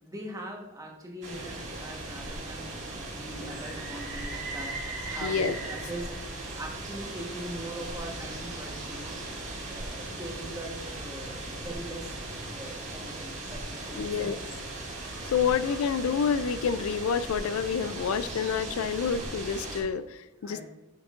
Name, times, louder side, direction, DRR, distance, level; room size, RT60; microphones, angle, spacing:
voice 1, 0.0-4.7 5.0-6.2 6.6-12.2 12.5-14.4 20.4-20.6, right 1 dB, 15° right, 0 dB, 1.1 m, -41 dB
sound 1, 1.2-19.8, right 2 dB, 55° right, 2.4 m, -38 dB
voice 2, 5.2-5.6 14.0-14.4 15.3-20.6, left 6 dB, 75° left, 14 dB, 0.4 m, -28 dB
9.3 x 6.2 x 2.5 m, 1.0 s
head